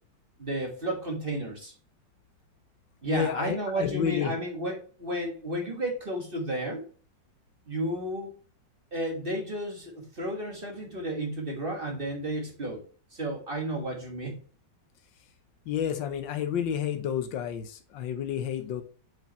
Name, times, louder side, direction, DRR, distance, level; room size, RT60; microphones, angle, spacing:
voice 1, 0.4-1.7 3.0-6.9 7.7-8.4 8.9-12.8 13.1-14.4, right 1 dB, 30° right, 1 dB, 1.7 m, -32 dB
voice 2, 3.1-4.3 15.7-18.8, left 9 dB, 85° left, 8 dB, 1.6 m, -30 dB
7.9 x 5.1 x 3.0 m, 0.38 s
omnidirectional pair, 2.0 m